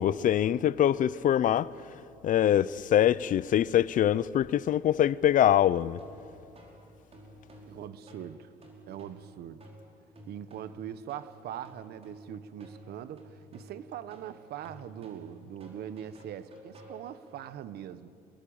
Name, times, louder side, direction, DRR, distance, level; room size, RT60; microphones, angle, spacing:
voice 1, 0.0-1.7 2.2-6.0, left 11 dB, 50° left, 0.6 m, -24 dB
sound 1, 5.9-17.4, right 1 dB, 35° right, 5.2 m, -52 dB
voice 2, 7.7-8.5 8.9-9.6 10.2-18.1, right 10 dB, 70° right, 1.1 m, -42 dB
26.0 x 21.0 x 8.8 m
cardioid pair, 110°, 17 cm